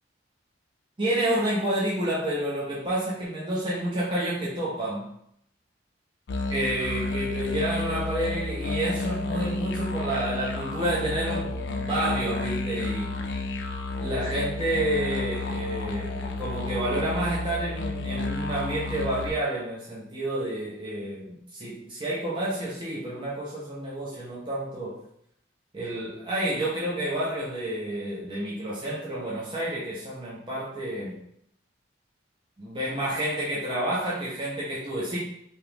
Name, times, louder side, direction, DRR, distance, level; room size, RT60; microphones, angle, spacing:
voice 1, 1.0-5.1 6.5-13.2 14.0-21.2 21.5-25.0 25.7-31.2 32.6-35.2, right 1 dB, 25° right, -7 dB, 0.6 m, -29 dB
sound 1, 6.3-19.3, left 2 dB, 60° left, 0.4 m, -31 dB
2.8 x 2.4 x 3.3 m, 0.72 s
head